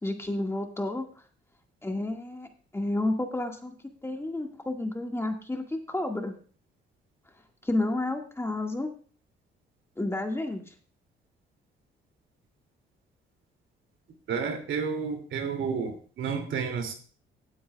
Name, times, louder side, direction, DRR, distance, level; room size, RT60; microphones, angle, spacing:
voice 1, 0.0-1.1 1.8-3.7 4.0-6.3 7.6-8.9 10.0-10.7, left 2 dB, 15° left, 3 dB, 1.8 m, -31 dB
voice 2, 14.3-16.9, right 6 dB, 75° right, 4 dB, 2.6 m, -31 dB
16.0 x 9.3 x 2.3 m, 0.41 s
cardioid pair, 90°, 20 cm